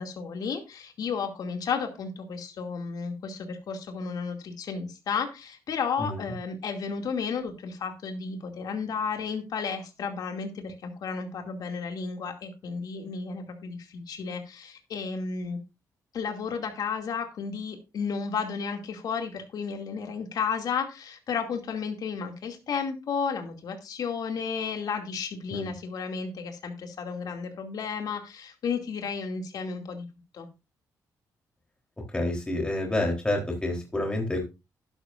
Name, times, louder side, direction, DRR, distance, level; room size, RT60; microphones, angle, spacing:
voice 1, 0.0-15.6 16.1-30.1 30.3-30.5, left 5 dB, 70° left, 4 dB, 2.5 m, -33 dB
voice 2, 32.1-34.5, left 1 dB, 15° left, 1 dB, 3.6 m, -28 dB
12.0 x 11.5 x 2.6 m, 0.27 s
cardioid pair, 110°, 7 cm